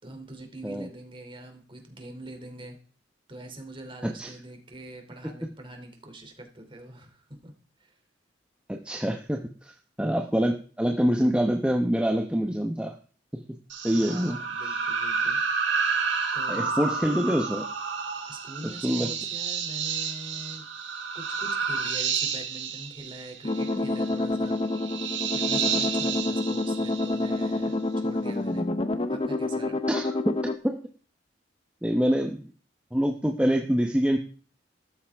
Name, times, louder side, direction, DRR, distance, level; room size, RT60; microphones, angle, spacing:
voice 1, 0.0-2.8 3.3-7.5 7.8-7.9 13.9-15.4 16.3-17.6 18.3-20.6 21.1-24.6 25.3-28.7 29.1-29.8, right 1 dB, 30° right, 5 dB, 2.9 m, -44 dB
voice 2, 8.7-9.5 10.0-13.0 13.3-13.4 13.7-14.4 16.5-17.6 18.6-19.1 29.9-30.3 30.6-30.8 31.8-32.4 32.9-34.2, equal, 5° right, 2 dB, 1.0 m, -25 dB
sound 1, 13.7-27.6, right 6 dB, 85° right, 4.2 m, -30 dB
sound 2, 23.4-30.6, left 2 dB, 30° left, 0.8 m, -28 dB
14.0 x 12.5 x 3.5 m, 0.40 s
head